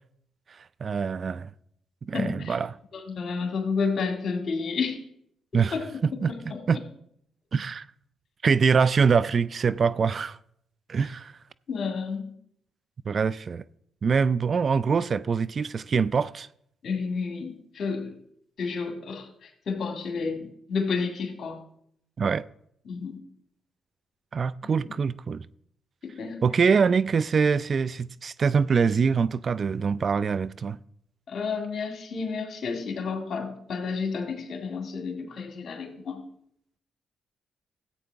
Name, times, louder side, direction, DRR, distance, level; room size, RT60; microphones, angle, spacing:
voice 1, 0.8-1.5 2.1-2.8 5.5-5.8 6.0-6.3 6.7-6.8 7.5-7.8 8.4-10.4 10.9-11.3 13.1-13.6 14.0-16.5 22.2-22.5 24.3-25.5 26.4-30.8, right 5 dB, 55° right, 0.4 m, -24 dB
voice 2, 2.1-2.6 2.9-5.0 5.7-5.9 6.1-6.6 11.7-12.3 16.8-18.1 18.6-21.6 22.9-23.2 24.9-25.0 26.0-26.4 31.3-36.2, left 5 dB, 60° left, 2.0 m, -31 dB
14.0 x 8.5 x 3.4 m
supercardioid pair, 50°, 0 cm